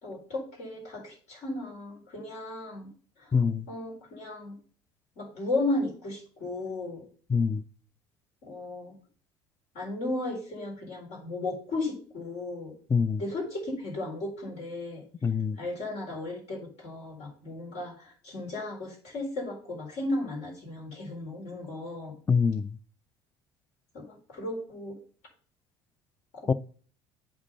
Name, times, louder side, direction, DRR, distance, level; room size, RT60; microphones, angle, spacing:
voice 1, 0.0-2.9 3.2-3.3 3.7-4.6 5.2-7.1 8.4-9.0 9.7-12.7 13.2-15.0 15.6-22.1 23.9-25.0, left 2 dB, 60° left, 4.2 m, -35 dB
voice 2, 3.3-3.7 7.3-7.6 12.9-13.2 15.2-15.6 22.3-22.8 26.5-26.6, left 5 dB, 20° left, 0.5 m, -24 dB
8.7 x 4.5 x 5.4 m
hypercardioid pair, 70°, 13 cm